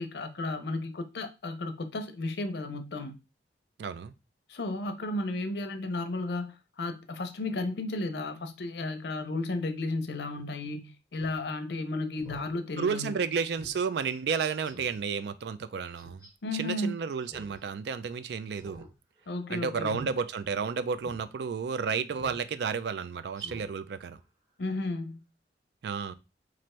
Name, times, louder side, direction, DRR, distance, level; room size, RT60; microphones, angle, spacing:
voice 1, 0.0-3.2 4.5-13.2 16.4-16.9 19.3-20.1 24.6-25.2, left 2 dB, 65° left, 0.5 m, -34 dB
voice 2, 3.8-4.1 12.8-16.2 16.5-18.9 19.5-24.2 25.8-26.1, right 6 dB, 65° right, 0.3 m, -32 dB
Speech synthesizer, 11.1-11.4 11.7-11.8 12.2-12.5 12.9-13.0 13.6-13.8 14.1-14.2 14.6-15.0 16.0-16.3 17.2-17.6 17.9-18.0 18.5-18.9 19.2-19.4 19.9-20.1 20.5-20.6 21.0-21.2 22.2-22.4 22.8-22.9 23.3-23.7 24.0-24.1, equal, 20° right, 1.0 m, -48 dB
3.1 x 2.5 x 4.2 m
head